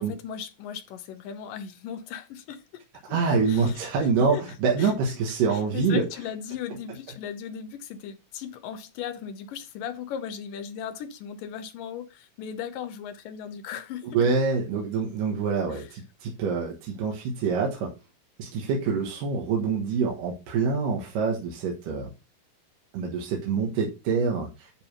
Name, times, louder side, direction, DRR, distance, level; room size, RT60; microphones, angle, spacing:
voice 1, 0.0-2.6 3.1-3.2 3.5-4.4 4.8-4.9 5.5-14.3 15.7-15.9, left 8 dB, 75° left, 2.6 m, -37 dB
voice 2, 3.1-6.1 14.1-17.9 18.4-22.1 22.9-24.8, right 5 dB, 70° right, 3.0 m, -26 dB
10.5 x 3.5 x 5.9 m
omnidirectional pair, 4.0 m